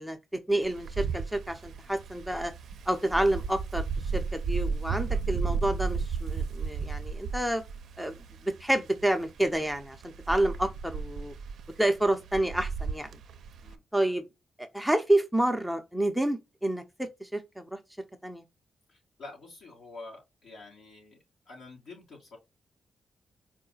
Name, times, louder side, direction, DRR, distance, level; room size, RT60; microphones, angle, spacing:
voice 1, 0.0-2.5 2.9-3.9 4.1-7.6 8.0-10.0 10.3-11.3 11.8-13.1 13.9-14.2 14.7-17.8 18.2-18.4, right 1 dB, ahead, 0.6 m, -29 dB
Wind, 0.6-13.7, right 5 dB, 85° right, 0.5 m, -34 dB
voice 2, 18.9-21.2 21.4-22.4, left 3 dB, 75° left, 2.9 m, -47 dB
4.7 x 2.1 x 3.9 m
cardioid pair, 95°, 0 cm